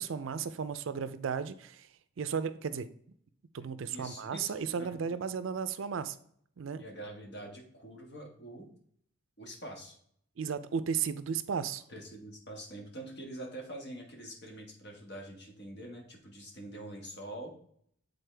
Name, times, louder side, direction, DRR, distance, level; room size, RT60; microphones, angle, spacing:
voice 1, 0.0-1.9 2.2-2.9 3.5-6.2 6.6-6.8 10.4-11.8, right 6 dB, 65° right, 13 dB, 0.4 m, -34 dB
voice 2, 3.9-5.2 6.8-8.7 9.4-10.0 11.9-17.5, right 1 dB, 50° left, 0 dB, 1.5 m, -45 dB
8.1 x 4.0 x 3.3 m, 0.64 s
head